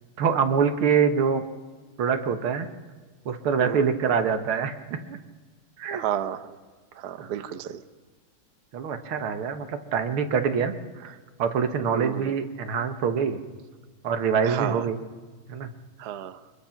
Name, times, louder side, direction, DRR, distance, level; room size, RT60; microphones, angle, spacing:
voice 1, 0.2-1.4 2.0-2.7 3.3-5.2 5.8-6.0 7.2-7.5 8.7-10.7 11.4-13.4 14.0-15.0 15.5-15.7, right 6 dB, 90° right, 8 dB, 2.2 m, -25 dB
voice 2, 5.9-6.6 7.0-7.8 11.9-12.3 14.4-14.8 16.0-16.4, right 10 dB, 60° right, 11 dB, 1.3 m, -31 dB
24.5 x 22.0 x 5.9 m, 1.4 s
omnidirectional pair, 2.3 m